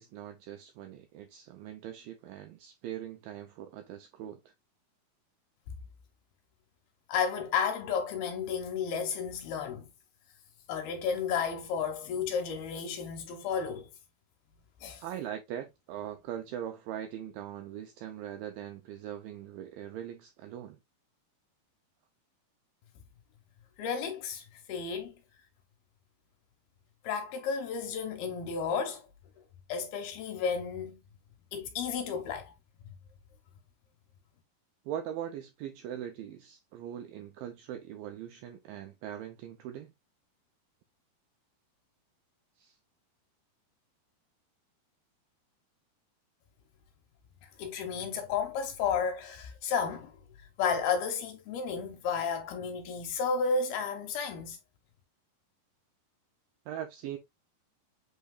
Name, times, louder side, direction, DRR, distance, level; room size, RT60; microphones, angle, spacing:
voice 1, 0.0-4.5 15.0-20.8 34.9-39.9 42.6-42.8 56.7-57.2, right 10 dB, 90° right, 2.0 m, -41 dB
voice 2, 7.1-9.9 10.7-13.9 14.8-15.0 23.8-25.1 27.0-29.1 29.7-31.0 31.5-32.5 47.6-50.2 50.6-54.6, left 6 dB, 80° left, 2.5 m, -32 dB
8.1 x 2.8 x 2.3 m
omnidirectional pair, 4.6 m